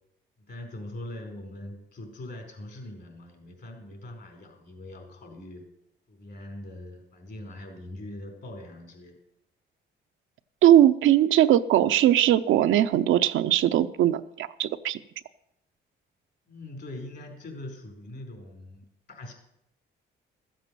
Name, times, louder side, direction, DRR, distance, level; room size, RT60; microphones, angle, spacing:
voice 1, 0.4-5.6 6.1-9.2 16.5-19.3, left 1 dB, 55° left, 3 dB, 4.4 m, -42 dB
voice 2, 10.6-15.0, right 12 dB, 80° right, 10 dB, 0.6 m, -20 dB
14.0 x 7.7 x 6.8 m, 0.81 s
cardioid pair, 90°, 20 cm